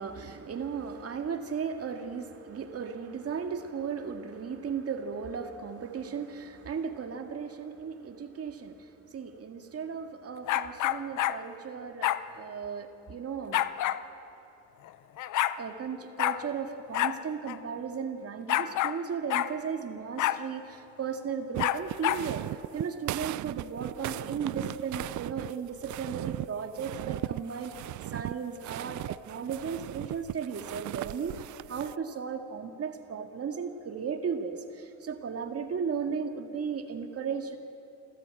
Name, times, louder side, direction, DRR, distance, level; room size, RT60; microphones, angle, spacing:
voice 1, 0.0-13.6 15.6-27.7 28.1-31.4 31.7-37.6, right 6 dB, 50° right, 6 dB, 2.0 m, -36 dB
sound 1, 10.5-11.4 12.0-12.2 13.5-14.0 14.9-15.0 15.2-15.6 16.2-16.4 16.9-17.2 17.5-17.6 18.5-19.0 19.3-19.5 20.2-20.4 21.6-22.2, left 13 dB, 80° left, 0.7 m, -27 dB
sound 2, 21.5-32.0, right 16 dB, 75° right, 0.5 m, -37 dB
26.0 x 14.0 x 8.9 m, 2.9 s
cardioid pair, 90°, 30 cm